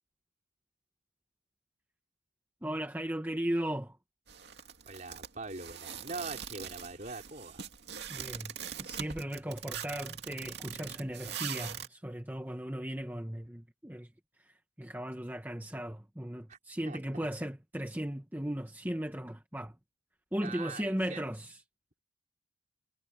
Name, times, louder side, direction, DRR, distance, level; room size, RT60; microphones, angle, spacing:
voice 1, 2.6-4.0 8.1-14.1 14.4-19.8 20.3-21.6, right 1 dB, 10° right, 1.5 m, -37 dB
sound 1, 4.3-11.9, right 8 dB, 60° right, 2.6 m, -42 dB
voice 2, 4.8-7.6 16.5-16.6 16.9-17.2 20.4-21.3, right 3 dB, 40° right, 4.6 m, -43 dB
head